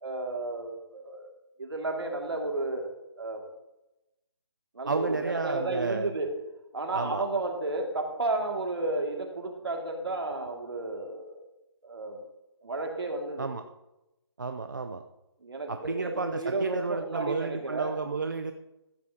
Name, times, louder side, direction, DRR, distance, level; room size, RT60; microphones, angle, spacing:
voice 1, 0.0-1.3 1.6-2.8 3.2-3.4 4.7-6.3 6.7-11.5 11.8-12.2 12.6-13.5 15.4-17.9, right 2 dB, 65° right, 2 dB, 2.2 m, -32 dB
voice 2, 4.9-6.1 6.9-7.2 13.4-13.6 14.4-15.0 15.7-18.5, right 4 dB, 45° right, 7 dB, 0.5 m, -31 dB
14.0 x 8.5 x 2.8 m, 0.95 s
hypercardioid pair, 175°, 14 cm